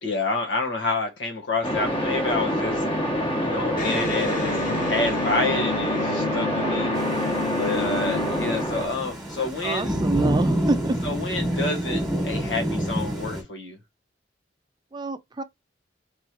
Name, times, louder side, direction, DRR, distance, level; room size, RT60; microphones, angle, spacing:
voice 1, 0.0-2.8 3.4-4.6 4.8-6.9 7.5-10.0 11.0-13.8, left 3 dB, 75° left, 1.4 m, -28 dB
sound 1, 1.6-8.9, equal, 30° left, 1.4 m, -26 dB
Electric guitar, 3.7-9.2, left 6 dB, 50° left, 1.9 m, -32 dB
voice 2, 6.3-6.8 9.4-11.0 14.9-15.4, right 3 dB, 25° right, 0.4 m, -28 dB
Thunder / Rain, 7.0-13.4, right 1 dB, ahead, 1.7 m, -28 dB
3.4 x 3.1 x 4.4 m
head